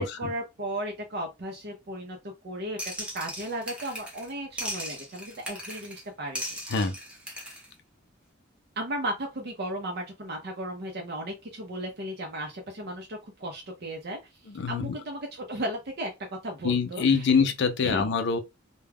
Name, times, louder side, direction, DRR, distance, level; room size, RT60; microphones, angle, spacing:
voice 1, 0.0-2.8 3.1-6.6 8.8-14.2 14.7-16.1 16.4-17.0 17.8-18.0, right 1 dB, 55° right, 0.6 m, -35 dB
sound 1, 2.8-4.3 4.6-6.0 6.3-7.7, equal, 5° right, 0.7 m, -37 dB
voice 2, 14.5-15.0 16.6-18.4, left 5 dB, 60° left, 0.5 m, -25 dB
2.2 x 2.2 x 3.4 m
head